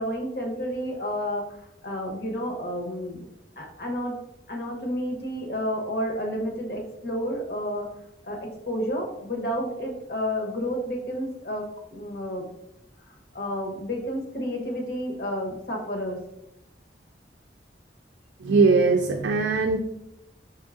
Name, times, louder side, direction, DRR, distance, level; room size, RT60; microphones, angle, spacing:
voice 1, 0.0-1.5 1.8-3.3 3.6-4.1 4.5-7.9 8.2-11.7 11.9-12.5 13.3-16.2, equal, 60° left, 1 dB, 0.9 m, -30 dB
voice 2, 18.4-19.8, right 4 dB, 85° right, 3 dB, 0.4 m, -20 dB
4.5 x 3.6 x 2.4 m, 0.85 s
head